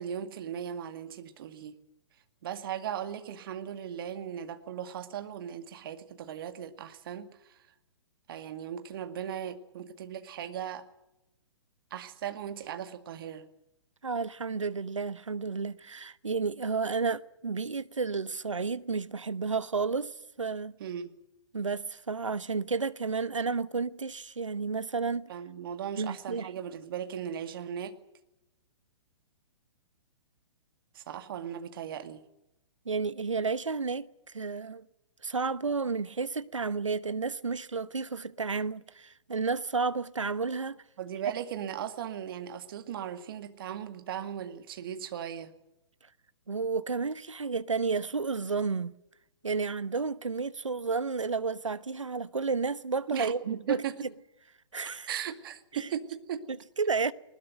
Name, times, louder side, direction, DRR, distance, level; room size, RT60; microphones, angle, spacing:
voice 1, 0.0-1.7 2.4-7.6 8.3-10.8 11.9-13.5 20.8-21.1 25.3-28.0 30.9-32.2 41.0-45.5 53.1-53.9 55.1-56.4, right 9 dB, 45° right, 2.1 m, -37 dB
voice 2, 14.0-20.1 20.4-20.7 21.5-25.3 26.0-26.5 32.9-34.1 34.3-34.8 35.2-40.8 46.5-48.9 49.4-54.1 54.7-55.1 56.5-57.1, right 4 dB, 75° right, 1.0 m, -31 dB
20.5 x 19.5 x 9.1 m
figure-of-eight pair, 120°, 16 cm